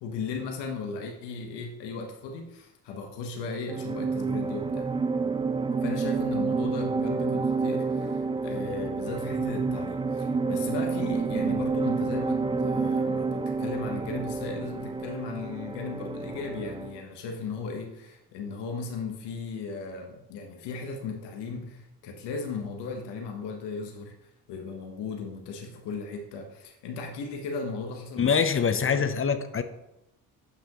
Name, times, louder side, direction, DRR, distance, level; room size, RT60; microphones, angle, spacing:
voice 1, 0.0-4.9 5.8-29.1, left 4 dB, 85° left, 2 dB, 1.2 m, -36 dB
sound 1, 3.7-17.0, right 4 dB, 15° right, 0.4 m, -29 dB
voice 2, 28.2-29.6, left 6 dB, 35° left, 10 dB, 0.6 m, -24 dB
8.2 x 5.7 x 3.0 m, 0.87 s
cardioid pair, 80°, 40 cm